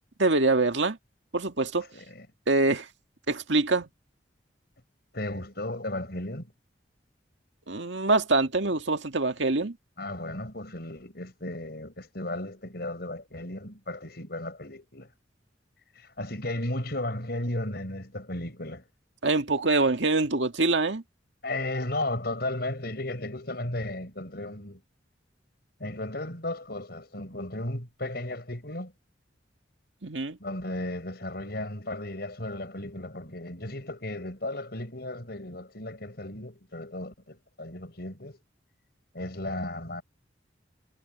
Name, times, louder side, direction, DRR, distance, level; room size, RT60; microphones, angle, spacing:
voice 1, 0.2-1.0 1.3-1.9 2.5-2.9 3.3-3.9 7.7-9.8 19.2-21.0 30.0-30.4, right 3 dB, 80° right, 2.0 m, -24 dB
voice 2, 1.9-2.3 5.1-6.5 10.0-15.1 16.0-18.8 21.4-24.8 25.8-28.9 30.4-38.4 39.1-40.0, left 1 dB, 55° left, 5.9 m, -35 dB
head